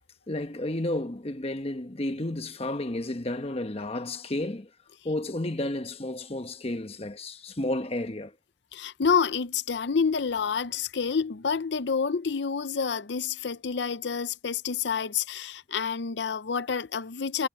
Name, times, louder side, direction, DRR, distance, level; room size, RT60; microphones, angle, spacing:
voice 1, 0.3-4.7 5.0-8.3, left 1 dB, 30° left, 1.1 m, -32 dB
voice 2, 8.7-17.5, left 6 dB, 60° left, 0.6 m, -28 dB
head